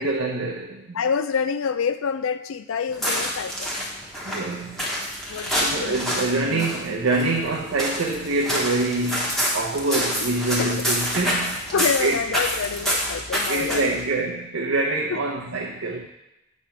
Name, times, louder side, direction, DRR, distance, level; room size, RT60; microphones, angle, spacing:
voice 1, 0.0-1.0 4.2-4.9 5.6-11.6 12.0-12.2 13.4-16.1, right 2 dB, 90° right, -2 dB, 0.7 m, -25 dB
voice 2, 0.9-3.7 5.3-6.0 6.5-6.7 9.9-10.0 10.6-10.7 11.7-13.9 15.1-15.2, left 6 dB, 90° left, 12 dB, 0.4 m, -27 dB
sound 1, 2.9-14.1, equal, ahead, 1.0 m, -28 dB
7.3 x 3.2 x 5.7 m, 0.95 s
head